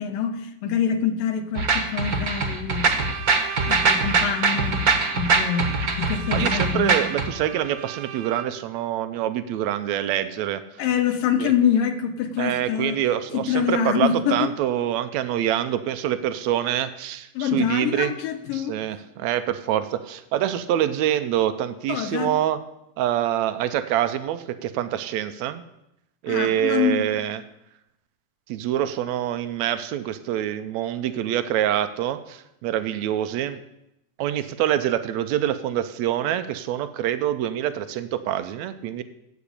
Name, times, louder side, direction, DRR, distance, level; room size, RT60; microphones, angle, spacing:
voice 1, 0.0-2.9 3.7-4.8 5.1-7.0 10.8-13.0 13.3-14.5 17.4-18.8 21.9-22.3 26.3-27.0, left 8 dB, 80° left, 6 dB, 2.7 m, -25 dB
sound 1, 1.5-7.2, right 4 dB, 50° right, 1.1 m, -22 dB
Bowed string instrument, 2.9-8.7, right 9 dB, 65° right, 1.9 m, -37 dB
voice 2, 6.3-10.6 11.4-11.5 12.4-18.1 18.5-22.6 23.0-25.6 26.2-27.4 28.5-33.6 34.2-39.0, right 11 dB, 85° right, 11 dB, 1.6 m, -25 dB
13.5 x 8.2 x 8.6 m, 0.85 s
omnidirectional pair, 4.0 m